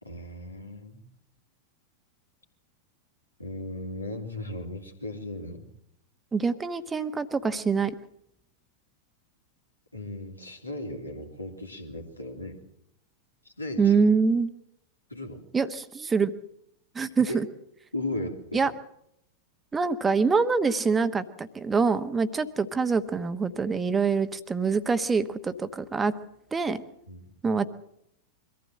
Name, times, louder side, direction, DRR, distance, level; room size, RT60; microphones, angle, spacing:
voice 1, 0.0-1.1 3.4-5.7 9.9-12.6 13.4-14.0 15.1-15.4 17.3-17.4 17.9-18.7 27.1-27.4, left 1 dB, 85° left, 2 dB, 3.0 m, -36 dB
voice 2, 6.3-7.9 13.8-14.5 15.5-16.3 16.9-17.4 18.5-18.7 19.7-26.1 26.5-26.8 27.4-27.7, right 5 dB, 15° right, 11 dB, 1.2 m, -25 dB
23.5 x 15.0 x 7.7 m, 0.77 s
figure-of-eight pair, 90°, 0 cm